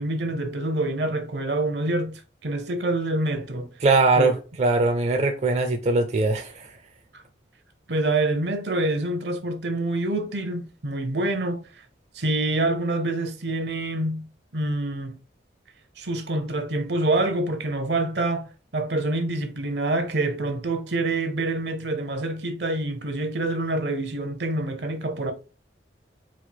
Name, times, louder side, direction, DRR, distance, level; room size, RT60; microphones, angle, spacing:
voice 1, 0.0-3.7 4.2-4.3 7.1-7.2 7.9-11.6 12.1-14.3 14.5-15.2 16.0-25.3, right 2 dB, 70° right, 0.7 m, -26 dB
voice 2, 3.8-6.7, right 3 dB, 35° right, 0.4 m, -21 dB
4.3 x 2.4 x 4.1 m
head